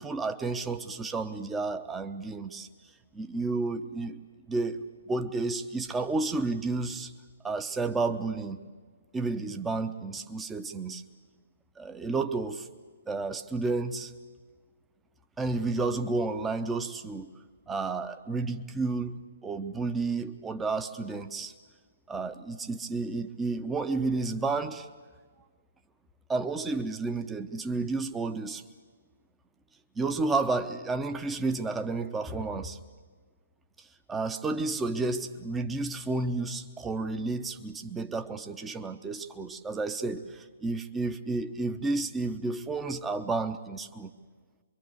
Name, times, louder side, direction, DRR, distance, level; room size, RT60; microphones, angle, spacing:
voice 1, 0.0-2.7 3.1-4.2 4.5-7.1 7.4-8.6 9.1-11.0 11.8-12.7 13.1-14.1 15.4-17.3 17.7-21.5 22.1-24.9 26.3-28.6 29.9-32.8 34.1-44.1, right 3 dB, 10° right, 8 dB, 1.0 m, -31 dB
25.5 x 23.5 x 8.1 m, 1.5 s
figure-of-eight pair, 125°, 0 cm